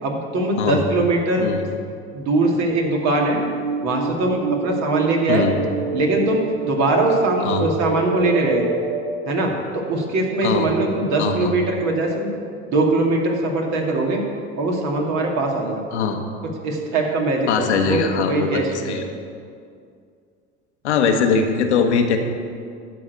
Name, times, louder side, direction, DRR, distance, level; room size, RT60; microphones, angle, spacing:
voice 1, 0.0-1.5 2.1-3.4 3.8-5.5 5.9-8.6 9.3-12.3 12.7-14.2 14.6-15.8 16.6-19.0, right 2 dB, 55° right, 0 dB, 2.3 m, -21 dB
sound 1, 2.9-9.1, right 4 dB, 80° right, 2.4 m, -27 dB
voice 2, 11.2-11.5 15.9-16.2 17.5-19.0 20.8-22.2, left 5 dB, 80° left, 4 dB, 1.2 m, -21 dB
11.5 x 4.8 x 8.3 m, 2.3 s
hypercardioid pair, 80°, 34 cm